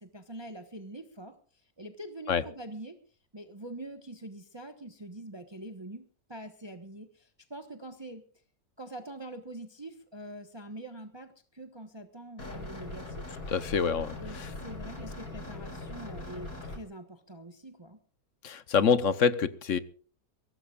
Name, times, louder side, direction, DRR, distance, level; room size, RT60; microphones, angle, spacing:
voice 1, 0.0-1.4 1.8-3.0 3.3-8.2 8.8-13.3 14.2-18.0, right 1 dB, 20° right, 6 dB, 1.2 m, -44 dB
sound 1, 12.4-16.8, left 2 dB, 85° left, 5.4 m, -41 dB
voice 2, 13.5-14.5 18.4-19.8, left 6 dB, 55° left, 14 dB, 1.3 m, -26 dB
23.0 x 17.5 x 2.5 m, 0.43 s
omnidirectional pair, 1.6 m